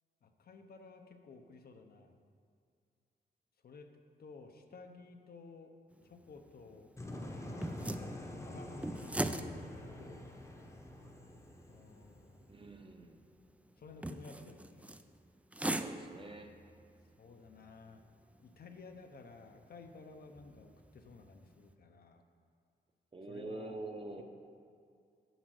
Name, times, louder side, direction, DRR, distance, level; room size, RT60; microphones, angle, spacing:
voice 1, 0.2-2.2 3.6-3.9 4.2-5.7 6.0-6.9 8.0-10.3 11.7-12.5 13.8-15.0 17.2-18.0 18.4-22.2 23.3-23.8 24.2-24.3, left 4 dB, 60° left, 5 dB, 0.7 m, -54 dB
sound 1, 5.9-21.7, right 1 dB, 5° right, 0.3 m, -45 dB
sound 2, 7.0-12.8, left 1 dB, 15° left, 0.8 m, -46 dB
voice 2, 12.5-13.2 15.7-16.5 23.1-24.2, right 2 dB, 30° right, 3 dB, 0.8 m, -45 dB
8.0 x 5.0 x 6.3 m, 2.3 s
wide cardioid pair, 120°, 18 cm